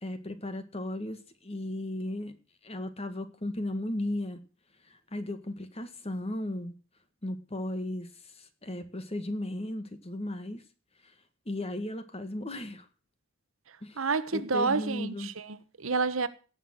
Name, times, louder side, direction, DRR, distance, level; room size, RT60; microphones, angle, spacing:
voice 1, 0.0-2.3 2.6-4.4 4.9-6.7 7.2-8.1 8.6-10.6 11.5-12.9 13.8-14.0 14.3-15.3, left 1 dB, 30° left, 1.7 m, -35 dB
voice 2, 14.0-16.3, right 4 dB, 75° right, 1.1 m, -29 dB
17.5 x 6.7 x 7.9 m
head